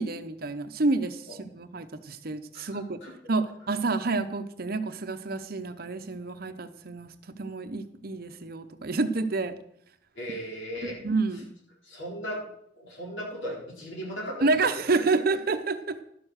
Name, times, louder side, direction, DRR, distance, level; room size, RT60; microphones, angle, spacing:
voice 1, 0.0-3.0 3.3-9.6 11.0-11.5 14.4-16.1, right 3 dB, 55° right, 10 dB, 0.8 m, -29 dB
voice 2, 10.1-11.0 11.8-12.4 12.8-15.0, equal, 80° left, -2 dB, 4.1 m, -37 dB
12.0 x 6.9 x 6.3 m, 0.72 s
head